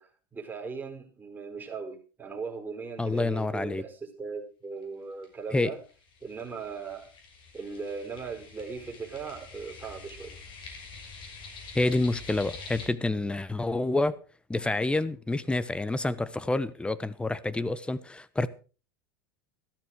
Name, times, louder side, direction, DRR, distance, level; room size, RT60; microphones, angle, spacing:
voice 1, 0.0-5.8 6.2-7.1 7.5-10.4, right 5 dB, 15° right, 4.7 m, -38 dB
voice 2, 3.0-3.8 5.5-5.7 11.7-14.2 14.5-18.5, left 2 dB, 10° left, 1.1 m, -28 dB
sound 1, 4.8-4.9 5.2-5.3 5.6-12.9, left 4 dB, 45° left, 6.2 m, -46 dB
14.5 x 12.5 x 5.0 m
hypercardioid pair, 90°, 11 cm